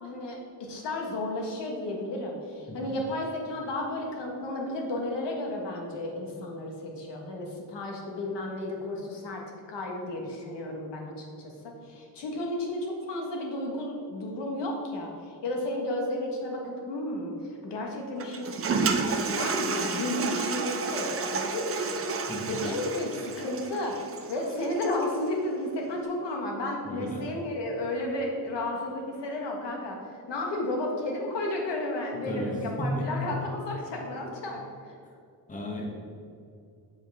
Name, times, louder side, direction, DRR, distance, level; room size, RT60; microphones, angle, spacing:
voice 1, 0.0-9.4 9.7-22.0 22.5-24.0 24.3-30.0 30.3-34.6, left 1 dB, 90° left, 0 dB, 1.6 m, -33 dB
Toilet flush, 18.2-25.1, right 5 dB, 35° right, 0.5 m, -31 dB
voice 2, 26.8-27.2 32.3-33.1 35.5-35.8, equal, 20° left, -1 dB, 1.2 m, -33 dB
8.4 x 7.7 x 3.6 m, 2.4 s
wide cardioid pair, 170°, 41 cm